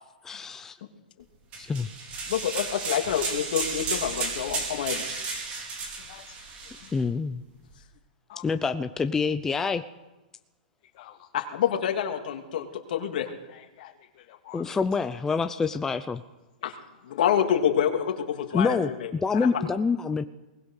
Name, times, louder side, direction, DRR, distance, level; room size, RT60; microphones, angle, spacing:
voice 1, 0.2-0.6 1.6-1.9 6.9-7.4 8.4-9.8 14.5-16.2 18.5-20.2, left 5 dB, 10° left, 9 dB, 0.6 m, -26 dB
sound 1, 1.5-6.9, right 4 dB, 25° right, 4.2 m, -33 dB
voice 2, 2.3-5.0 11.3-13.3 16.6-16.7 17.0-19.1 19.3-19.7, left 9 dB, 60° left, 4 dB, 2.9 m, -27 dB
voice 3, 10.9-11.3 13.5-14.7, left 13 dB, 45° left, 6 dB, 1.2 m, -49 dB
22.0 x 19.5 x 6.5 m, 1.1 s
hypercardioid pair, 155°, 5 cm